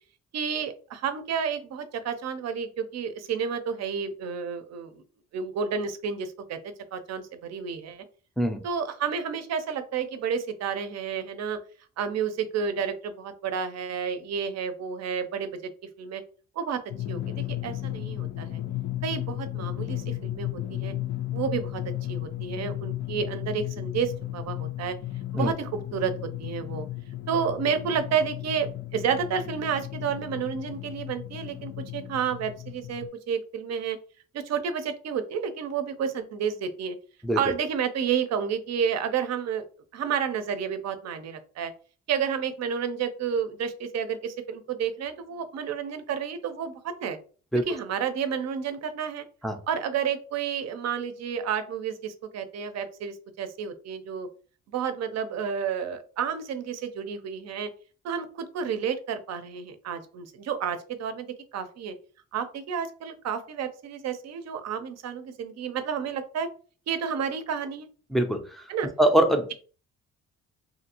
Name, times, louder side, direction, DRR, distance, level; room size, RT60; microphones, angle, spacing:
voice 1, 0.3-5.0 5.3-6.6 6.9-8.0 8.6-11.6 12.0-15.7 16.0-16.2 16.6-16.8 17.1-18.6 19.0-20.9 21.3-21.8 22.1-24.9 25.3-26.9 27.3-34.0 34.3-37.0 37.4-39.6 39.9-41.7 42.1-47.2 47.7-49.2 49.7-54.3 54.7-57.7 58.0-61.9 62.3-66.5 66.9-67.9 68.7-68.9, right 7 dB, 60° right, 10 dB, 0.6 m, -30 dB
Drum, 16.9-33.1, left 14 dB, 70° left, 0.5 m, -34 dB
voice 2, 68.1-68.7 69.0-69.5, right 1 dB, ahead, 4 dB, 0.5 m, -23 dB
2.6 x 2.5 x 2.9 m, 0.39 s
cardioid pair, 90°, 30 cm